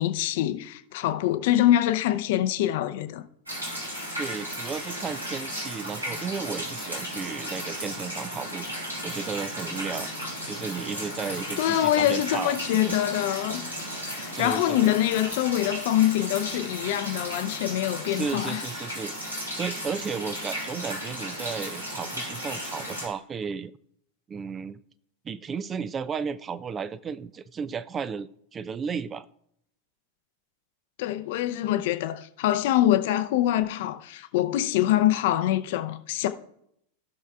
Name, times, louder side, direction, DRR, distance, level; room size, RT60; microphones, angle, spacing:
voice 1, 0.0-3.2 11.6-13.7 14.0-18.6 31.0-36.3, left 13 dB, 50° left, 0.6 m, -24 dB
sound 1, 3.5-23.1, equal, 85° right, 3.3 m, -35 dB
voice 2, 4.2-8.7 9.0-10.1 10.4-13.0 14.3-14.8 18.1-19.1 19.6-23.7 24.3-24.8 25.2-29.3, right 6 dB, 20° right, 0.4 m, -34 dB
16.0 x 6.4 x 2.4 m
figure-of-eight pair, 90°, 0 cm